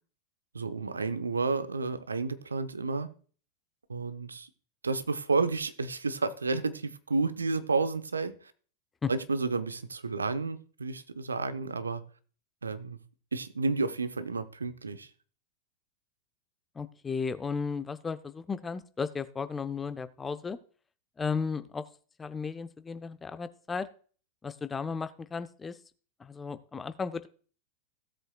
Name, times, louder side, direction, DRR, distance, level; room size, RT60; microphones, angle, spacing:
voice 1, 0.5-3.1 3.9-4.5 4.8-8.4 9.1-12.0 12.6-13.0 13.3-15.1, right 4 dB, 75° right, 0.8 m, -31 dB
voice 2, 16.7-20.6 21.2-21.9 22.2-23.9 24.4-25.8 26.2-27.3, left 5 dB, 15° left, 0.6 m, -34 dB
16.5 x 7.8 x 2.3 m
figure-of-eight pair, 90°, 0 cm